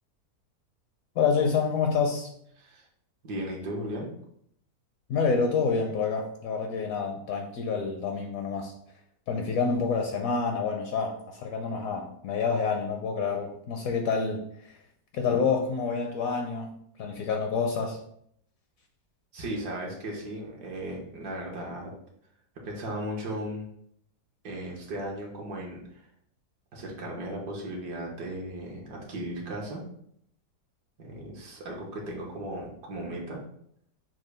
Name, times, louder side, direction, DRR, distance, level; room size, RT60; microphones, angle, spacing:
voice 1, 1.2-2.3 5.1-8.7 9.3-14.8 15.1-18.0, left 5 dB, 70° left, 3 dB, 0.9 m, -28 dB
voice 2, 3.2-4.1 19.3-21.9 22.6-23.7 24.4-26.0 26.7-29.8 31.0-33.4, right 1 dB, 75° right, -2 dB, 1.6 m, -36 dB
6.1 x 2.3 x 3.3 m, 0.69 s
omnidirectional pair, 1.8 m